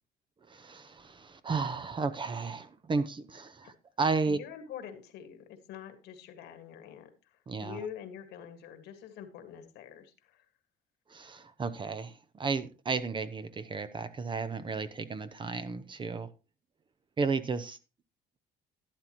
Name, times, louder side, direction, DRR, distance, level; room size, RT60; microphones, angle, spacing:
voice 1, 0.5-4.4 7.5-7.8 11.1-16.3 17.2-17.8, right 4 dB, 30° right, 0.7 m, -33 dB
voice 2, 4.3-10.5, left 8 dB, 85° left, 1.8 m, -45 dB
12.0 x 10.5 x 3.0 m
cardioid pair, 110°, 17 cm